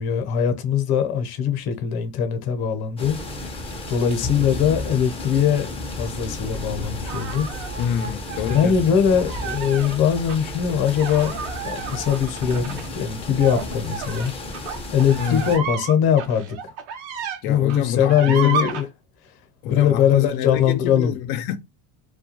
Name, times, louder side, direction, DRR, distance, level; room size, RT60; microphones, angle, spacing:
voice 1, 0.0-3.2 3.9-5.7 6.0-7.5 8.4-11.4 11.6-14.3 14.9-16.7 17.4-18.8 19.6-21.1, left 8 dB, 45° left, 0.8 m, -21 dB
sound 1, 3.0-15.6, left 2 dB, 10° left, 0.4 m, -33 dB
sound 2, 7.1-8.7 9.2-10.0 10.3-10.4 10.9-17.4 17.7-18.8, right 6 dB, 65° right, 0.8 m, -32 dB
voice 2, 7.8-8.8 15.1-15.5 17.4-18.8 19.6-21.6, left 9 dB, 90° left, 0.6 m, -27 dB
2.3 x 2.2 x 2.8 m
cardioid pair, 120°, 50 cm